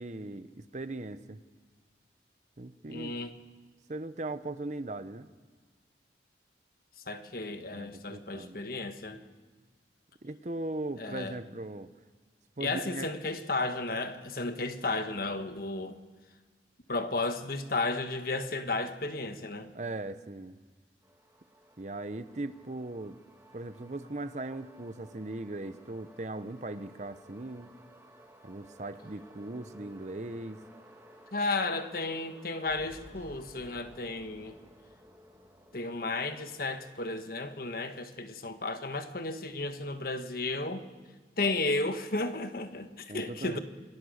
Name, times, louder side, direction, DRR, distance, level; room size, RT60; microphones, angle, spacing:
voice 1, 0.0-1.4 2.6-3.1 3.9-5.3 7.7-8.6 10.2-11.9 12.6-13.1 19.7-20.6 21.8-23.2 23.5-27.7 28.4-30.6 43.1-43.6, right 2 dB, 40° right, 0.8 m, -39 dB
voice 2, 2.9-3.3 7.1-9.2 11.0-11.4 12.6-16.0 16.9-19.7 31.3-34.6 35.7-40.9 41.4-43.6, left 2 dB, 50° left, 1.4 m, -33 dB
sound 1, 21.0-37.2, equal, 15° right, 2.4 m, -56 dB
28.0 x 18.0 x 6.5 m
head